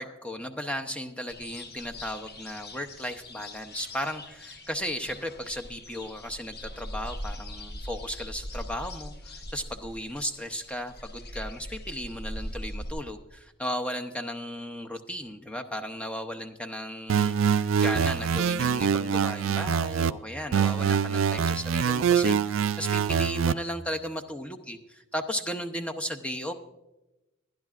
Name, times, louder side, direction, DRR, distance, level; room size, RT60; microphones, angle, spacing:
voice 1, 0.0-26.5, equal, 5° left, 5 dB, 0.6 m, -35 dB
sound 1, 1.3-12.9, left 1 dB, 50° left, 1.0 m, -41 dB
sound 2, 17.1-20.1 20.5-23.5, right 7 dB, 70° right, 0.4 m, -24 dB
22.5 x 10.5 x 2.5 m, 1.0 s
head